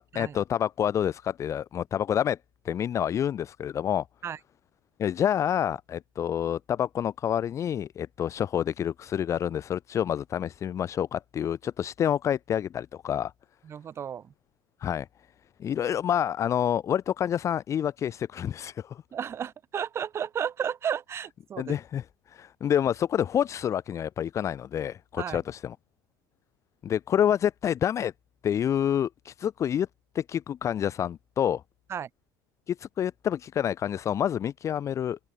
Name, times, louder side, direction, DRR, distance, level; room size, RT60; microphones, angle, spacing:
voice 1, 0.1-2.4 2.6-4.0 5.0-13.3 14.8-15.1 15.6-19.0 21.6-25.7 26.8-28.1 28.4-29.9 30.1-31.6 32.7-35.2, left 9 dB, 30° left, 1.1 m, -28 dB
voice 2, 13.6-14.3 19.1-21.8 25.2-25.4 31.9-32.1, right 8 dB, 25° right, 0.8 m, -33 dB
open air
supercardioid pair, 135°, 10 cm